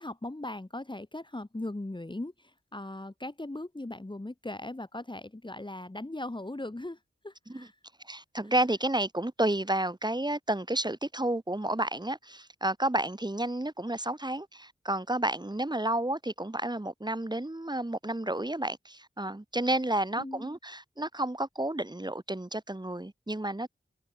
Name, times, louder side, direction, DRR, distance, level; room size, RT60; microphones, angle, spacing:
voice 1, 0.0-7.0 7.2-7.7 20.2-20.5, left 1 dB, 20° left, 1.9 m, -39 dB
voice 2, 8.0-23.7, right 1 dB, 20° right, 2.4 m, -31 dB
wide cardioid pair, 55°, 21 cm